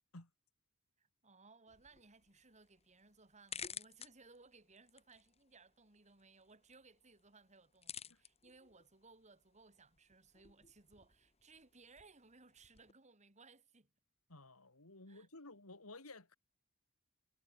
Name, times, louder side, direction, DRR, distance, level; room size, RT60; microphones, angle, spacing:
voice 1, 1.0-13.9 15.1-15.3, right 3 dB, 35° right, 3.9 m, -63 dB
sound 1, 1.7-12.9, left 7 dB, 30° left, 2.8 m, -55 dB
voice 2, 14.3-16.4, left 2 dB, 85° left, 3.8 m, -54 dB
head